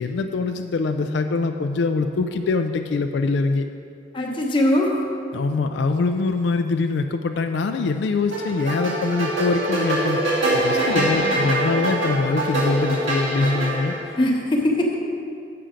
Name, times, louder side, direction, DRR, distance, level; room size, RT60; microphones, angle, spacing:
voice 1, 0.0-3.7 5.3-10.2 10.5-14.2, left 3 dB, 65° left, 7 dB, 0.3 m, -23 dB
voice 2, 4.1-5.0 10.9-11.4 14.2-15.0, left 1 dB, 25° left, 0 dB, 1.0 m, -22 dB
sound 1, 8.3-14.0, right 1 dB, 90° right, 2.3 m, -23 dB
7.5 x 6.8 x 5.0 m, 2.5 s
head